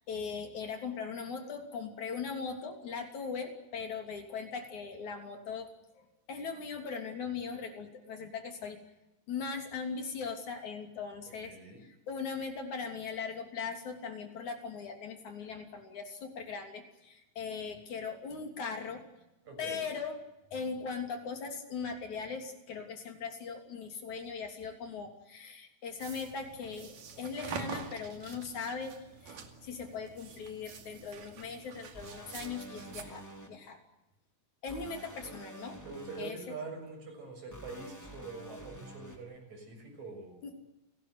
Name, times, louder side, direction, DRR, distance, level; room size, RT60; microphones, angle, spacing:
voice 1, 0.1-5.7 5.9-8.8 9.3-19.0 19.6-20.2 20.5-29.0 29.2-33.8 34.6-35.8 36.2-36.5 40.4-40.5, left 5 dB, 65° left, 4 dB, 4.5 m, -39 dB
voice 2, 11.3-11.8 15.4-15.6 19.4-19.8 35.8-40.4, right 3 dB, 60° right, 4 dB, 8.1 m, -45 dB
sound 1, 26.0-33.0, right 6 dB, 85° right, 4.0 m, -46 dB
sound 2, 31.9-33.5 34.7-36.3 37.5-39.2, right 1 dB, 5° left, 3.5 m, -48 dB
30.0 x 18.5 x 8.1 m, 0.94 s
omnidirectional pair, 3.6 m